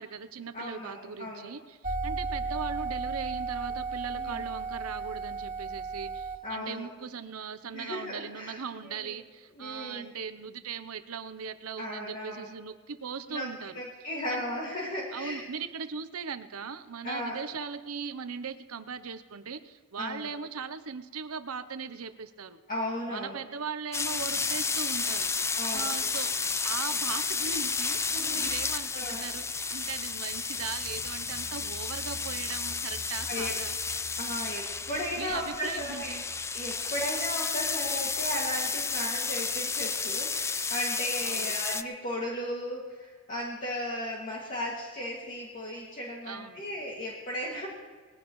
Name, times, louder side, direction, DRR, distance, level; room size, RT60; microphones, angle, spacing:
voice 1, 0.0-13.7 14.3-14.4 15.1-22.6 23.1-26.3 26.6-33.8 35.2-36.2 41.2-41.6 46.2-46.6, right 6 dB, 80° right, 11 dB, 0.8 m, -39 dB
voice 2, 0.5-1.5 4.1-4.4 6.4-6.9 7.7-9.1 9.6-10.1 11.8-12.5 13.3-13.5 13.7-15.4 17.0-17.4 20.0-20.3 22.7-23.4 25.5-25.9 28.1-29.3 33.3-33.5 34.2-36.1 36.5-47.7, equal, 40° left, -4 dB, 2.2 m, -36 dB
sound 1, 1.8-6.4, right 4 dB, 40° right, 2.2 m, -34 dB
sound 2, 23.9-41.8, left 4 dB, 10° left, 0.4 m, -32 dB
sound 3, 29.8-40.5 40.8-40.9 41.2-41.3, right 1 dB, 85° left, 2.9 m, -51 dB
21.0 x 15.5 x 3.1 m, 1.5 s
head